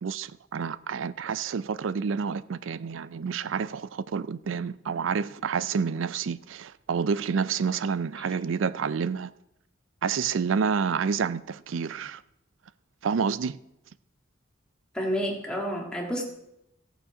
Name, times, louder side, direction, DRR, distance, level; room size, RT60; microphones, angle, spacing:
voice 1, 0.0-9.3 10.0-12.2 13.0-13.6, right 6 dB, 80° right, 0.4 m, -29 dB
voice 2, 14.9-16.2, equal, 5° left, 1.8 m, -29 dB
14.5 x 7.1 x 5.0 m
head